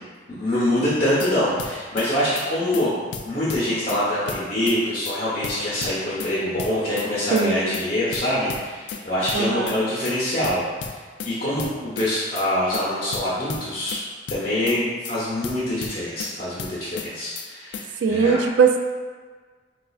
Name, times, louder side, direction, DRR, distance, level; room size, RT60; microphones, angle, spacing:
voice 1, 0.3-2.9 3.2-11.0 11.2-14.0 14.3-18.4, left 1 dB, 35° left, -9 dB, 0.7 m, -25 dB
sound 1, 0.9-1.3 1.6-2.1 2.4-2.5 2.7-2.9 3.1-4.0 4.3-4.8 5.0-5.2 5.4-6.3 6.6-7.1 7.4-7.5 7.7-7.9 8.1-9.0 9.3-9.8 10.0-10.2 10.4-11.3 11.6-12.1 12.4-12.5 12.7-12.9 13.1-14.0 14.3-14.8 15.0-15.2 15.4-16.3 16.6-17.1 17.4-17.5 17.7-17.9, left 6 dB, 70° left, 0.3 m, -34 dB
voice 2, 7.3-7.8 9.3-9.8 18.0-18.8, right 5 dB, 70° right, 4 dB, 0.3 m, -20 dB
4.1 x 2.4 x 2.3 m, 1.5 s
head